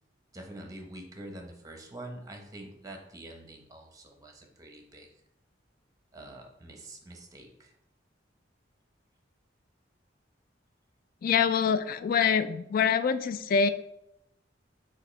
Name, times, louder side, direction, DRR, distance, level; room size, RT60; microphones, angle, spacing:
voice 1, 0.3-5.1 6.1-7.7, right 1 dB, 20° right, 2 dB, 0.7 m, -46 dB
voice 2, 11.2-13.7, left 6 dB, 50° left, 12 dB, 0.3 m, -25 dB
6.4 x 2.5 x 3.1 m, 0.81 s
head